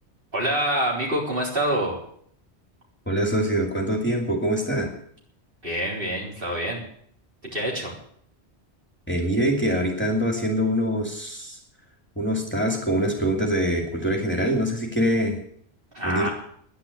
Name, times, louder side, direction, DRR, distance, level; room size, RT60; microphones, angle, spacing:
voice 1, 0.3-2.0 5.6-6.8 7.5-7.9 15.9-16.3, right 1 dB, 55° right, -2 dB, 4.2 m, -26 dB
voice 2, 3.1-4.9 9.1-11.6 12.2-15.4 16.0-16.3, equal, 10° left, 1 dB, 2.6 m, -24 dB
10.5 x 10.5 x 9.3 m, 0.64 s
omnidirectional pair, 1.1 m